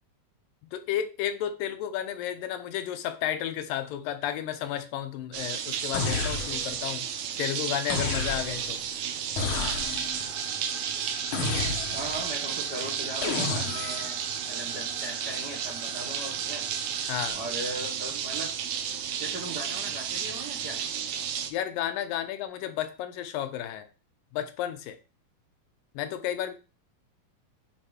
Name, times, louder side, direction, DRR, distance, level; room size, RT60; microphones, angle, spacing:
voice 1, 0.7-7.1 7.4-8.8 17.1-17.4 21.5-23.9 24.3-25.0 26.0-26.5, left 11 dB, 80° left, 2.4 m, -32 dB
sound 1, 5.3-21.5, right 8 dB, 70° right, 1.8 m, -32 dB
sound 2, 5.9-6.9 7.9-8.8 9.4-10.2 11.3-12.2 13.2-14.1, left 4 dB, 65° left, 1.3 m, -31 dB
sound 3, 9.7-17.3, left 1 dB, 15° left, 0.9 m, -48 dB
voice 2, 11.9-14.2 14.5-16.6 17.3-18.5 19.2-20.8, right 1 dB, 45° right, 1.4 m, -38 dB
9.4 x 3.3 x 4.9 m
omnidirectional pair, 4.0 m